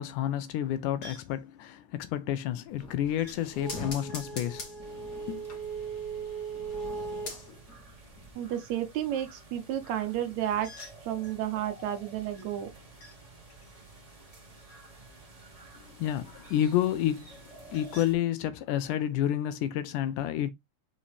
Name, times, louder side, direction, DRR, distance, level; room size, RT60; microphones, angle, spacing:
voice 1, 0.0-5.5 16.0-17.4 17.7-20.5, left 11 dB, 80° left, 2.2 m, -30 dB
sound 1, 1.0-1.4 3.2-3.4 4.1-5.9 10.4-11.4 12.3-13.2 13.5-15.4 17.3-18.2, left 1 dB, 55° left, 2.8 m, -52 dB
sound 2, 2.7-7.8 8.2-8.3, right 3 dB, 35° left, 1.9 m, -38 dB
sound 3, 4.8-18.1, right 2 dB, 20° right, 0.9 m, -52 dB
voice 2, 8.4-10.7 11.0-12.7, right 11 dB, 70° right, 2.0 m, -31 dB
5.6 x 5.1 x 3.3 m
omnidirectional pair, 3.7 m